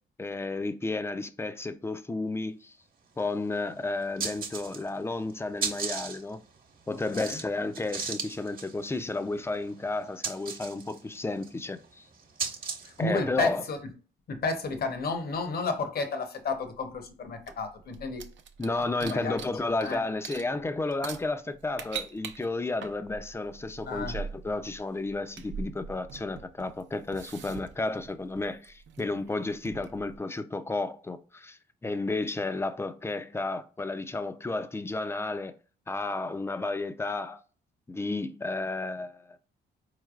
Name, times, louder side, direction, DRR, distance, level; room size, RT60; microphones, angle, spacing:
voice 1, 0.2-2.7 3.2-6.4 6.9-12.0 13.0-13.6 18.6-35.5 35.9-37.4 37.9-39.3, left 2 dB, 15° left, 0.4 m, -32 dB
sound 1, 3.2-3.3 3.6-3.7 4.0-5.0 5.3-13.0, right 5 dB, 50° right, 1.0 m, -37 dB
voice 2, 6.9-7.4 12.8-13.8 14.3-18.2 19.0-20.0 23.9-24.2, left 3 dB, 50° left, 0.9 m, -32 dB
sound 2, 16.7-20.0 20.2-30.2, right 6 dB, 65° right, 0.6 m, -43 dB
4.4 x 3.2 x 2.4 m
cardioid pair, 90°, 20 cm